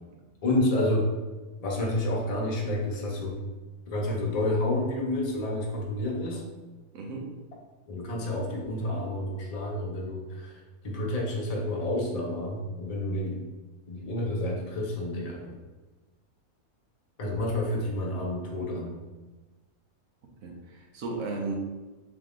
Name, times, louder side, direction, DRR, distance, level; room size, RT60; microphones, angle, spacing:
voice 1, 0.4-1.1 1.6-3.4 3.9-6.4 7.9-13.4 13.9-15.6 17.2-18.9, left 1 dB, 35° left, -1 dB, 0.6 m, -29 dB
voice 2, 6.9-7.3 20.4-21.6, right 3 dB, 75° right, 0 dB, 1.2 m, -35 dB
3.6 x 3.3 x 3.6 m, 1.2 s
omnidirectional pair, 1.5 m